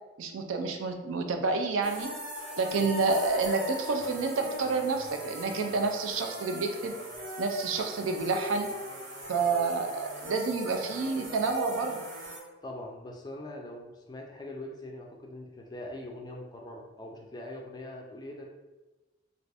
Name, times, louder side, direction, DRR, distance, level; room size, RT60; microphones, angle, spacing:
voice 1, 0.2-2.1 2.6-7.0 7.4-8.7 9.3-12.0, right 4 dB, 90° right, 4 dB, 0.4 m, -29 dB
sound 1, 1.8-12.4, equal, 40° right, 0.7 m, -40 dB
voice 2, 12.6-18.5, left 1 dB, 20° left, 1 dB, 0.3 m, -42 dB
2.5 x 2.4 x 3.3 m, 1.1 s
head